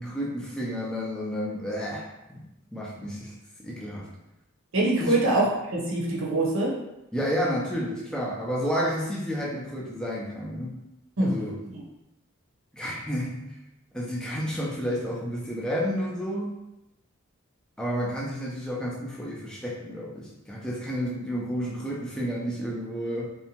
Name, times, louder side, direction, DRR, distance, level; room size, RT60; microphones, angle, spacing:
voice 1, 0.0-2.4 2.7-3.3 3.6-4.1 5.0-5.2 7.1-10.8 11.2-11.6 12.7-13.6 13.9-16.5 17.8-23.3, equal, 5° left, -4 dB, 0.4 m, -31 dB
voice 2, 4.7-6.7 11.2-11.4 11.7-11.8, right 2 dB, 75° right, -4 dB, 0.8 m, -24 dB
2.7 x 2.2 x 2.8 m, 0.92 s
head